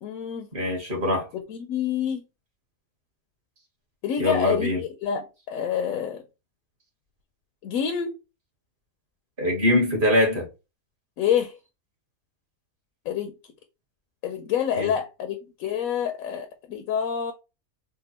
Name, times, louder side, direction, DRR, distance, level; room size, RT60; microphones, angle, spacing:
voice 1, 0.0-0.5 1.3-2.2 4.0-6.2 7.6-8.2 11.2-11.6 13.1-13.3 14.2-17.3, left 8 dB, 75° left, 1.0 m, -27 dB
voice 2, 0.5-1.3 4.2-4.8 9.4-10.5 14.8-14.9, left 1 dB, 35° right, 1.5 m, -23 dB
3.7 x 2.2 x 4.1 m
omnidirectional pair, 1.5 m